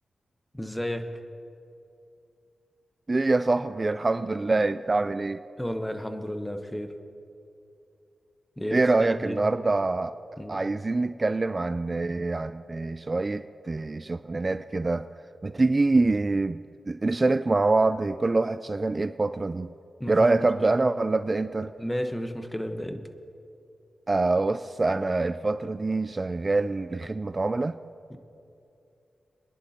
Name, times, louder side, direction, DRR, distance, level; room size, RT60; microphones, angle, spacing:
voice 1, 0.5-1.1 5.6-6.9 8.6-9.4 10.4-10.6 20.0-20.7 21.8-23.0 28.1-28.2, equal, 10° left, 1.0 m, -33 dB
voice 2, 3.1-5.4 8.7-10.1 10.5-15.1 15.4-19.7 20.1-21.7 24.1-27.8, right 3 dB, 40° right, 0.3 m, -25 dB
26.0 x 10.5 x 2.9 m
cardioid pair, 50°, 0 cm